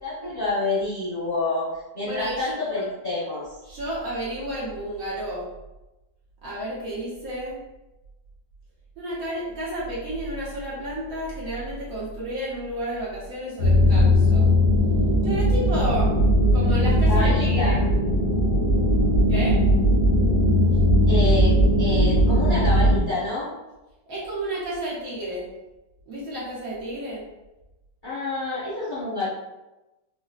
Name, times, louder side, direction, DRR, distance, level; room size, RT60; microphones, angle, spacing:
voice 1, 0.0-1.7 1.9-3.6 17.1-17.8 21.1-23.5 28.0-29.3, left 2 dB, 40° left, -10 dB, 0.7 m, -28 dB
voice 2, 2.0-2.6 3.6-5.5 6.4-7.6 9.0-14.5 15.2-16.1 16.5-17.8 19.3-19.6 24.1-25.5 26.1-27.3, right 1 dB, 60° right, -7 dB, 1.1 m, -31 dB
sound 1, 13.6-23.0, equal, 75° left, 1.1 m, -19 dB
3.8 x 2.1 x 2.4 m, 1.0 s
omnidirectional pair, 2.0 m